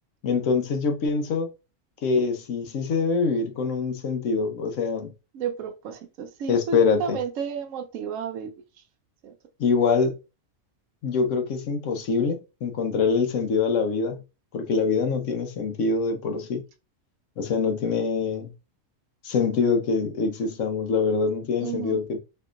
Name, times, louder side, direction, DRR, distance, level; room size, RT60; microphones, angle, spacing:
voice 1, 0.2-1.5 2.0-5.1 6.5-7.2 9.6-10.2 11.0-14.2 14.5-16.6 17.4-18.5 19.2-22.2, left 5 dB, 70° left, 1.1 m, -24 dB
voice 2, 5.3-8.5 9.2-9.3 21.6-22.0, right 7 dB, 75° right, 1.0 m, -32 dB
4.3 x 2.7 x 2.4 m
omnidirectional pair, 1.4 m